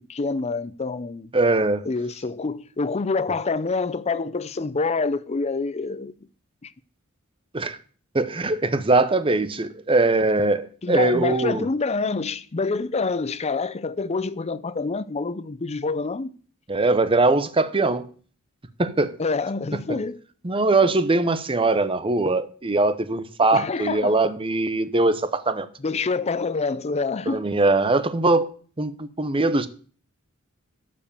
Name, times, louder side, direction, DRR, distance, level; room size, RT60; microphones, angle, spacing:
voice 1, 0.1-1.3 1.9-6.1 10.8-16.3 19.2-20.2 23.5-24.2 25.8-27.5, left 4 dB, 30° left, 0.5 m, -26 dB
voice 2, 1.3-1.9 7.5-7.8 8.1-11.7 16.7-18.1 18.8-19.2 19.9-20.0 20.4-25.7 27.3-28.5 28.8-29.7, right 2 dB, 25° right, 0.7 m, -21 dB
12.0 x 5.1 x 7.0 m
head